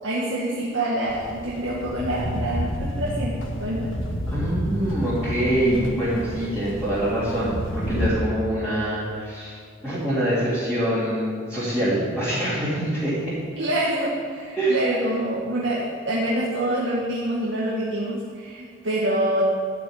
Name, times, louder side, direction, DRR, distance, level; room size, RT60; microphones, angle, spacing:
voice 1, 0.0-3.9 13.6-19.4, right 1 dB, 70° right, -6 dB, 1.8 m, -26 dB
sound 1, 1.1-8.1, equal, 80° left, 1.5 m, -30 dB
voice 2, 4.3-9.5 9.8-13.3 14.5-14.8, right 1 dB, 5° right, -13 dB, 3.3 m, -25 dB
13.0 x 5.9 x 9.1 m, 2.1 s
head